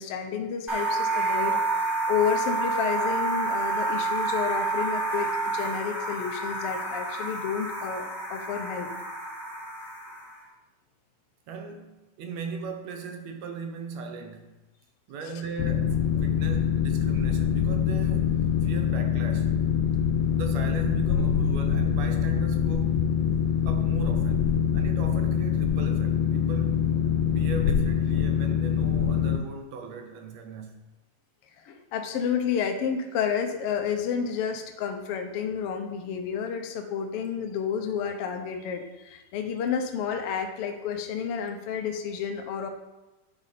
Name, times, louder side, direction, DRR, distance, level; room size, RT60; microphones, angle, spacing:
voice 1, 0.0-1.6 2.1-8.9 15.2-15.4 31.6-42.7, left 7 dB, 75° left, 4 dB, 1.4 m, -30 dB
sound 1, 0.7-10.4, right 3 dB, ahead, 1.7 m, -29 dB
voice 2, 11.5-14.5 15.1-19.5 20.3-23.0 23.6-26.8 27.3-30.8, right 5 dB, 70° right, 5 dB, 1.8 m, -38 dB
Boat Water vehicle, 15.6-29.4, left 8 dB, 90° left, 1.5 m, -24 dB
9.5 x 4.9 x 4.2 m, 1.1 s
omnidirectional pair, 3.6 m